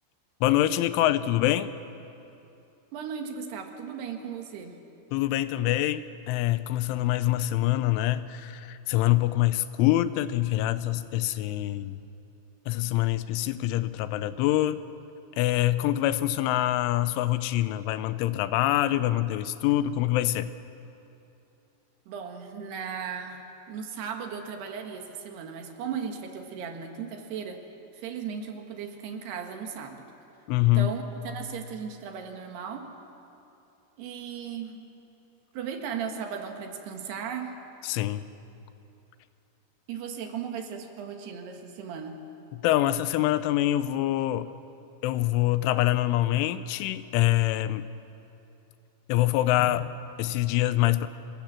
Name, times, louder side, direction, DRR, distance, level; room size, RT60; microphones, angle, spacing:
voice 1, 0.4-1.7 5.1-12.0 12.7-14.8 15.4-20.5 30.5-30.9 37.8-38.2 42.5-44.5 45.0-47.9 49.1-51.1, left 15 dB, 85° left, 13 dB, 3.2 m, -25 dB
voice 2, 2.9-4.8 22.1-23.4 23.7-27.6 27.9-30.0 30.7-32.9 34.0-34.8 35.5-37.6 39.9-42.2, right 7 dB, 65° right, 4 dB, 3.3 m, -36 dB
26.0 x 20.0 x 7.4 m, 2.8 s
omnidirectional pair, 5.4 m